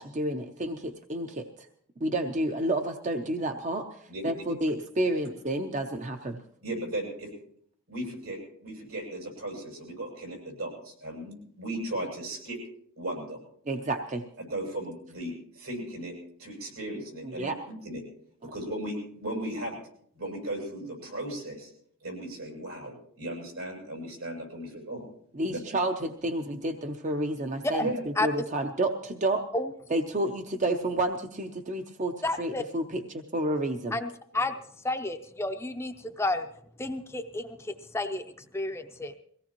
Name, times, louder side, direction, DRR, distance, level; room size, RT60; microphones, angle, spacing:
voice 1, 0.0-1.5 2.0-3.9 4.2-6.4 13.7-14.2 17.4-17.6 25.3-27.9 28.2-29.4 29.9-34.0, right 1 dB, 35° right, 6 dB, 0.7 m, -30 dB
voice 2, 4.1-4.4 6.6-7.3 7.9-12.6 13.0-13.4 14.4-16.1 16.4-18.0 18.5-19.8 20.2-21.7 22.0-25.0 25.4-25.6 27.8-28.0 34.3-34.5, right 1 dB, 80° right, -1 dB, 7.8 m, -36 dB
voice 3, 32.2-32.6 33.9-34.1 34.3-34.5 34.8-36.5 36.8-38.2 38.5-39.1, left 2 dB, 10° left, 6 dB, 0.6 m, -31 dB
23.0 x 17.0 x 3.0 m, 0.64 s
head